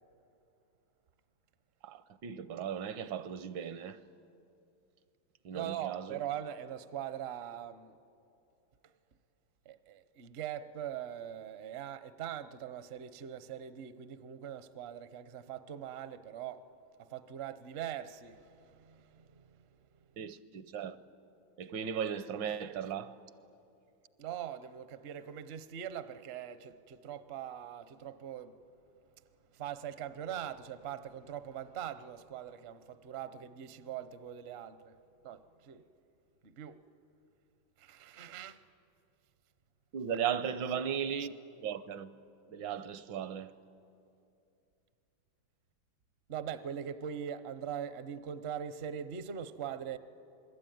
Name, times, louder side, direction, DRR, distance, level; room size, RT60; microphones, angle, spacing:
voice 1, 1.8-4.0 5.4-6.2 20.2-21.0 21.6-23.1 39.9-41.3 41.6-42.2 42.5-43.5, right 8 dB, 75° right, 1.5 m, -37 dB
voice 2, 5.5-8.0 9.7-16.6 17.0-19.6 24.2-28.5 29.5-34.9 35.2-35.8 36.4-36.8 37.8-38.6 46.3-50.0, right 9 dB, 50° right, 0.7 m, -42 dB
27.5 x 21.0 x 9.3 m
omnidirectional pair, 2.1 m